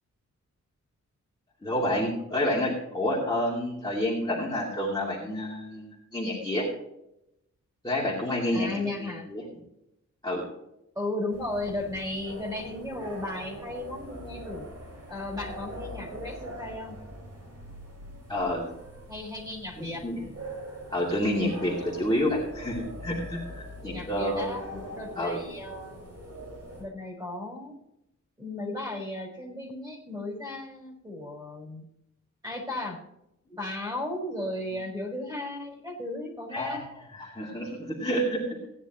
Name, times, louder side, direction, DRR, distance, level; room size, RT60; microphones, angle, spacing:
voice 1, 1.6-6.7 7.8-8.7 9.0-9.4 10.2-10.4 18.3-18.7 19.8-20.2 20.9-24.8 25.2-25.5 36.5-38.6, left 1 dB, 15° left, -6 dB, 2.5 m, -29 dB
voice 2, 8.5-9.3 10.9-14.7 15.1-17.0 19.1-20.0 23.8-24.6 24.9-26.0 26.8-27.8 28.4-31.8 32.4-33.0 33.4-36.8, left 2 dB, 10° right, -1 dB, 4.0 m, -35 dB
sound 1, 11.3-26.8, equal, 55° right, 5.3 m, -43 dB
17.0 x 10.0 x 3.0 m, 0.82 s
wide cardioid pair, 180°, 29 cm